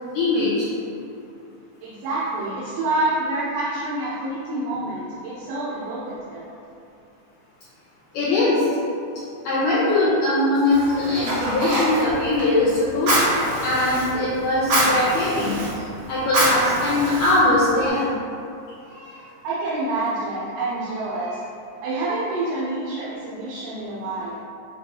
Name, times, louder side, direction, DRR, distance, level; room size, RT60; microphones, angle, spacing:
voice 1, 0.1-0.7 8.1-8.7 9.5-18.0, left 2 dB, 75° left, -9 dB, 1.9 m, -21 dB
voice 2, 1.8-6.5 10.8-10.9 18.8-21.5 21.8-24.4, right 2 dB, 85° right, -7 dB, 2.3 m, -28 dB
Fire, 10.7-17.9, right 1 dB, 65° right, 2.3 m, -25 dB
6.9 x 2.4 x 2.8 m, 2.6 s
omnidirectional pair, 3.9 m